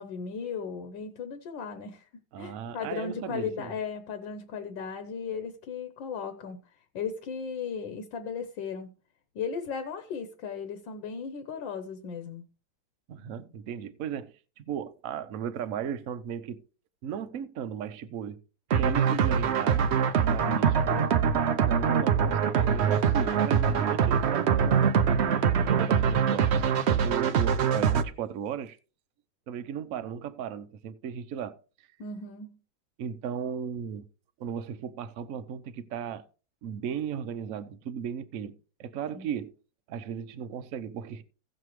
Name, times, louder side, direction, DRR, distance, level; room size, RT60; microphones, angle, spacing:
voice 1, 0.0-2.1 2.4-6.6 6.9-8.9 9.3-12.4 20.2-20.7 32.0-32.6 39.1-39.3, left 6 dB, 80° left, 1.6 m, -36 dB
voice 2, 2.3-3.7 13.1-16.6 17.0-18.4 18.8-19.9 20.3-21.1 21.7-25.0 25.6-28.8 29.5-31.6 33.0-34.1 34.4-36.2 36.6-39.5 39.9-41.2, right 8 dB, 60° right, 0.9 m, -36 dB
sound 1, 18.7-28.0, right 7 dB, 80° right, 0.5 m, -24 dB
16.0 x 6.7 x 3.1 m
omnidirectional pair, 2.1 m